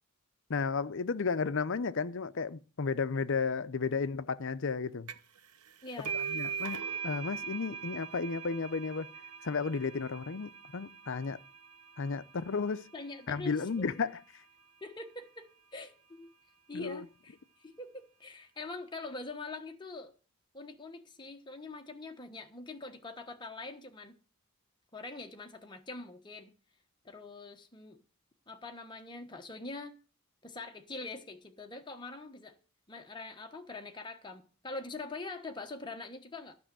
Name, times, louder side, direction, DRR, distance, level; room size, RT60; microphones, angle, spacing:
voice 1, 0.5-5.1 6.3-6.8 7.0-9.1 9.4-11.4 12.0-12.9 13.3-14.2 16.7-17.0, left 5 dB, 60° left, 0.6 m, -33 dB
sound 1, 5.1-5.4 5.7-13.0, right 7 dB, 90° right, 0.9 m, -41 dB
voice 2, 5.8-6.2 12.9-13.9 14.8-16.3 16.7-20.1 20.5-24.2 24.9-26.5 27.0-28.0 28.5-29.9 30.4-32.6 32.9-36.6, left 3 dB, 20° left, 1.1 m, -44 dB
12.5 x 6.2 x 7.6 m
head